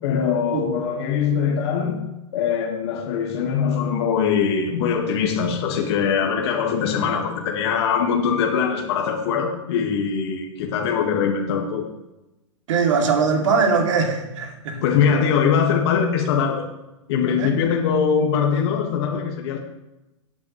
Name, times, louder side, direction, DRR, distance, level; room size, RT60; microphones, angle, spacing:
voice 1, 0.0-2.1 2.3-11.9 14.8-16.7 17.1-19.6, left 7 dB, 50° left, 1 dB, 1.7 m, -22 dB
voice 2, 12.7-14.8 17.3-17.5, right 5 dB, 65° right, 2 dB, 2.7 m, -21 dB
17.5 x 8.7 x 3.2 m, 0.97 s
hypercardioid pair, 150°, 17 cm